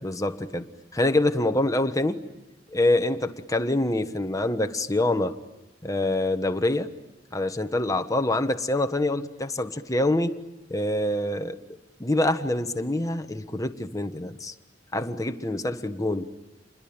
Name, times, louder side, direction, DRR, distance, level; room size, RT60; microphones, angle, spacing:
voice 1, 0.0-2.2 2.7-5.4 5.8-6.9 7.3-10.4 10.7-11.6 12.0-14.5 14.9-16.3, left 1 dB, 20° left, 8 dB, 1.3 m, -25 dB
29.5 x 22.5 x 8.8 m, 0.97 s
head